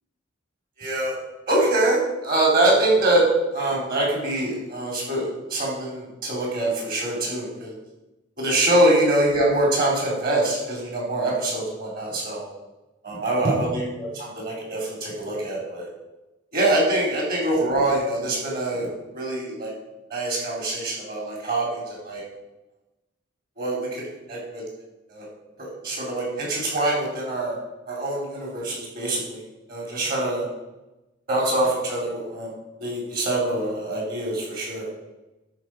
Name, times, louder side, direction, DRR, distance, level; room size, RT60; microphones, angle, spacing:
voice 1, 0.8-1.2 1.5-3.2 3.5-7.7 8.4-12.4 13.0-15.9 16.5-19.7 20.1-22.2 23.6-24.0 24.3-24.6 25.1-25.3 25.6-27.6 27.9-29.4 29.7-30.5 31.3-32.5 32.8-34.9, right 1 dB, 45° right, -3 dB, 3.9 m, -24 dB
11.5 x 4.9 x 6.5 m, 1.0 s
head